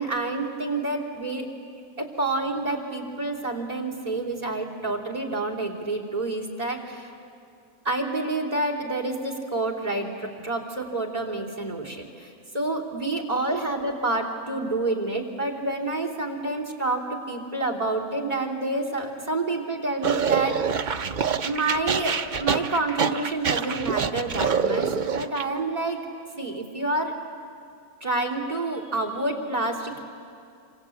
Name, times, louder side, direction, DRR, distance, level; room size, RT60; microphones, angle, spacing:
voice 1, 0.0-1.4 2.0-7.1 7.8-20.9 21.4-26.0 26.4-27.2 28.0-30.0, right 2 dB, 25° right, 1 dB, 3.2 m, -28 dB
sound 1, 20.0-25.4, right 6 dB, 45° right, 0.7 m, -26 dB
26.5 x 26.0 x 8.4 m, 2.4 s
omnidirectional pair, 1.6 m